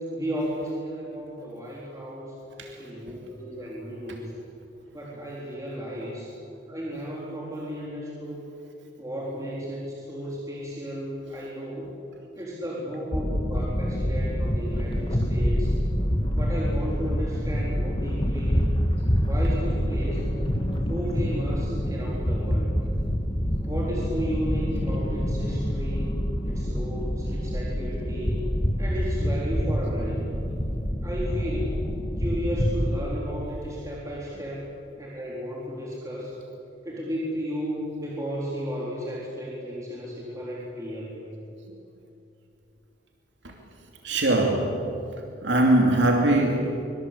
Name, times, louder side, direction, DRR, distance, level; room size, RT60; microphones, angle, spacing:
voice 1, 0.1-2.3 2.8-4.3 4.9-6.3 6.7-8.4 9.0-11.9 12.3-15.7 16.3-18.7 19.2-20.2 20.9-22.7 23.7-26.2 26.4-28.4 28.8-30.4 31.0-31.8 32.2-34.7 35.0-36.3 36.8-41.2, equal, 20° right, -5 dB, 3.9 m, -34 dB
sound 1, 13.1-33.0, equal, 25° left, 2.4 m, -26 dB
voice 2, 44.0-44.9 45.4-46.8, right 1 dB, 75° right, 1 dB, 2.7 m, -21 dB
24.0 x 23.5 x 8.4 m, 2.7 s
head